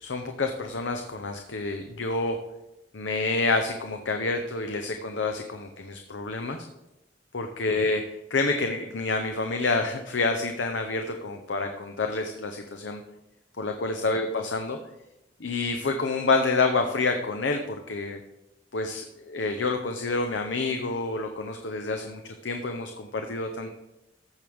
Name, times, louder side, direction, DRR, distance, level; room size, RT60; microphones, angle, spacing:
voice 1, 0.0-2.4 2.9-6.6 7.3-13.0 13.6-14.8 15.4-18.2 18.7-23.7, left 3 dB, 80° left, 5 dB, 0.8 m, -28 dB
14.5 x 6.3 x 3.5 m, 0.94 s
head